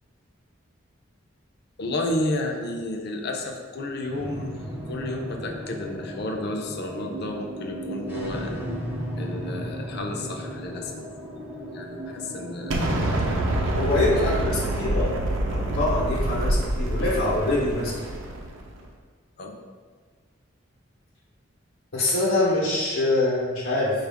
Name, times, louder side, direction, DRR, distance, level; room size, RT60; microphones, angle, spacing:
voice 1, 1.8-4.5 4.9-8.9 9.2-10.9 11.7-12.8 14.1-14.3 19.4-19.5, left 2 dB, 55° left, 3 dB, 0.5 m, -31 dB
sound 1, 4.1-18.8, right 1 dB, 10° right, 0.5 m, -37 dB
Explosion, 12.7-18.7, right 1 dB, 75° right, 0.5 m, -26 dB
voice 2, 13.7-15.1 15.5-17.9 21.9-24.1, left 2 dB, 90° left, -7 dB, 0.9 m, -24 dB
4.4 x 2.4 x 3.4 m, 1.5 s
head